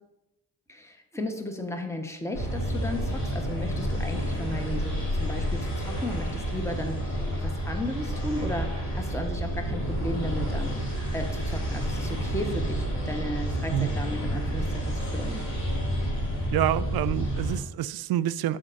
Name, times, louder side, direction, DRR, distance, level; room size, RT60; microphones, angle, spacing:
voice 1, 0.7-10.8 11.1-15.5, left 1 dB, 5° left, 4 dB, 1.1 m, -35 dB
sound 1, 2.3-17.6, equal, 80° left, 2.8 m, -29 dB
voice 2, 16.5-18.6, right 12 dB, 60° right, 16 dB, 0.5 m, -27 dB
12.5 x 4.4 x 2.6 m, 0.93 s
supercardioid pair, 50°, 43 cm